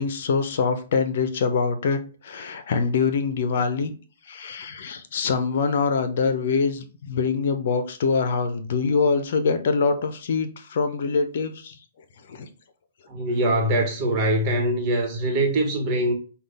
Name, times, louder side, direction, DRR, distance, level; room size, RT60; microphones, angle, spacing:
voice 1, 0.0-3.9 4.3-11.8 12.3-12.5, left 5 dB, 65° left, 0.6 m, -24 dB
voice 2, 13.1-16.1, right 1 dB, 40° right, 1.2 m, -23 dB
5.2 x 2.4 x 3.4 m
hypercardioid pair, 130°, 0 cm